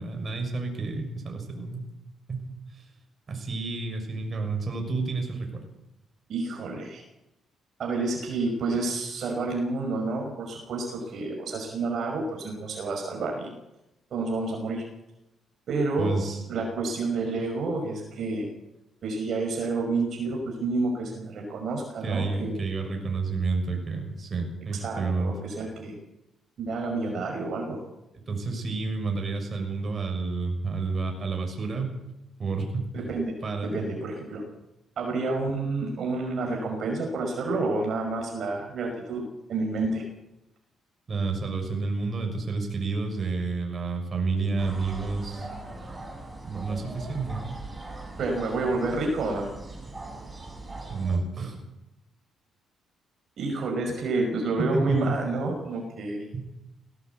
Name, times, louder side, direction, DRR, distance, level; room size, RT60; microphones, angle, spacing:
voice 1, 0.0-1.9 2.3-2.8 3.3-5.6 16.0-16.4 22.0-25.3 28.3-31.9 32.4-32.9 33.4-33.8 41.1-45.5 46.4-47.4 50.9-51.6 54.6-55.2 56.3-56.5, right 4 dB, 40° right, 3 dB, 6.7 m, -30 dB
voice 2, 6.3-7.0 7.8-13.5 14.1-14.8 15.7-16.1 16.5-18.5 19.0-22.6 24.7-26.0 26.6-27.8 32.9-33.3 33.6-34.4 35.0-40.0 48.2-49.5 53.4-56.2, right 3 dB, 60° right, 1 dB, 5.5 m, -29 dB
sound 1, 44.6-51.2, right 2 dB, 20° right, 7.9 m, -40 dB
19.0 x 17.5 x 8.3 m, 0.92 s
cardioid pair, 90°, 0 cm